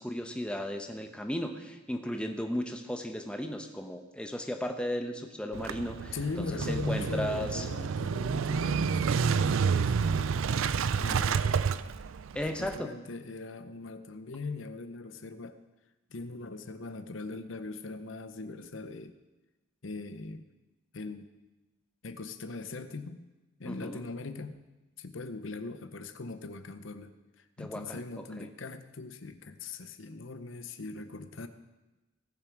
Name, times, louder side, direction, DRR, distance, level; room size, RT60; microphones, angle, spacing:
voice 1, 0.0-7.6 12.3-12.9 23.6-24.0 27.6-28.0 28.4-28.5, equal, 5° left, 4 dB, 0.9 m, -35 dB
Motorcycle / Engine starting, 5.5-12.8, right 6 dB, 90° right, 0.4 m, -29 dB
voice 2, 6.1-10.5 11.0-11.6 12.6-15.6 16.1-19.1 19.8-20.5 20.9-21.3 22.0-23.2 23.6-24.7 25.0-31.5, left 3 dB, 75° left, 10 dB, 0.8 m, -40 dB
19.0 x 6.9 x 4.7 m, 1.1 s
head